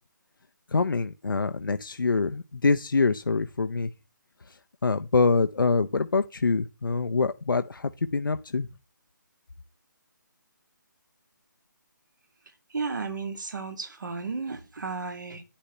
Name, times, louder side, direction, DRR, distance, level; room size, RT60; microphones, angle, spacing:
voice 1, 0.7-3.9 4.5-4.6 4.8-8.7, left 4 dB, 85° left, 0.6 m, -25 dB
voice 2, 12.7-15.4, right 4 dB, 65° right, 2.0 m, -33 dB
10.0 x 10.0 x 3.0 m
figure-of-eight pair, 155°, 11 cm